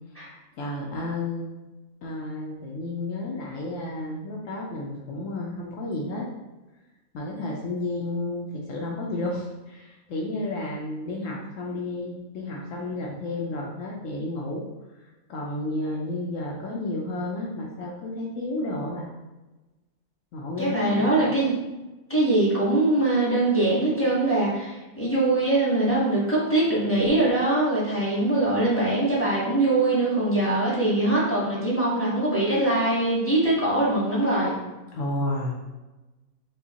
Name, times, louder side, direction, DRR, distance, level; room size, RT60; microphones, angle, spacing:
voice 1, 0.6-1.5 2.0-6.3 7.1-14.6 15.3-19.1 20.3-21.1 34.9-35.7, left 2 dB, 70° left, -2 dB, 0.9 m, -31 dB
voice 2, 20.6-21.5 22.1-34.5, right 2 dB, 10° left, -8 dB, 1.0 m, -22 dB
4.8 x 2.2 x 2.8 m, 1.1 s
omnidirectional pair, 1.5 m